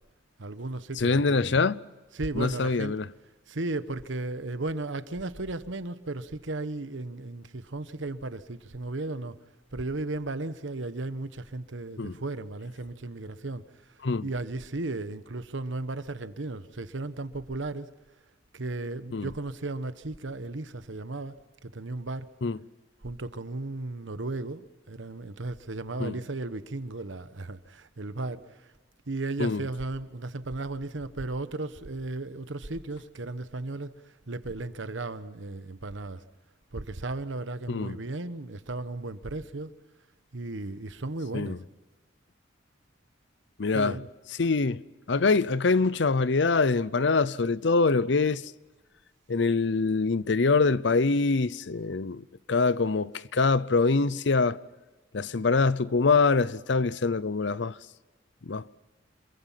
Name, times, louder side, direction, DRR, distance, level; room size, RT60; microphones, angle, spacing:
voice 1, 0.4-1.6 2.1-3.0 3.5-9.4 9.7-17.9 18.5-21.4 21.6-22.3 23.0-28.7 29.1-33.9 34.3-36.2 36.7-39.7 40.3-41.6 43.7-44.1, right 2 dB, 80° right, 1.2 m, -35 dB
voice 2, 1.0-1.8 2.3-3.1 12.0-12.2 14.0-14.3 19.1-19.3 22.4-22.6 26.0-26.2 29.4-29.6 37.7-38.0 41.3-41.6 43.6-44.0 44.4-44.8 45.1-48.5 49.3-54.6 55.1-57.8 58.4-58.7, left 4 dB, 70° left, 0.7 m, -24 dB
27.0 x 22.5 x 5.8 m
head